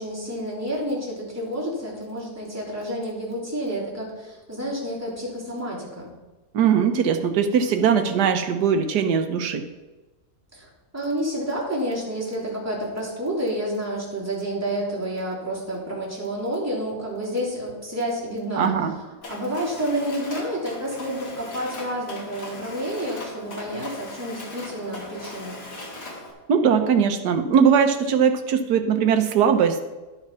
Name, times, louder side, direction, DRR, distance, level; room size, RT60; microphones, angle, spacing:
voice 1, 0.0-6.1 10.5-10.7 10.9-18.7 19.3-25.6, equal, 10° right, -6 dB, 3.2 m, -29 dB
voice 2, 6.5-9.6 18.6-19.0 26.5-29.8, right 7 dB, 85° right, 7 dB, 1.5 m, -20 dB
Mechanisms, 19.2-26.3, left 2 dB, 85° left, 2.6 m, -38 dB
11.5 x 5.8 x 5.7 m, 1.1 s
omnidirectional pair, 1.7 m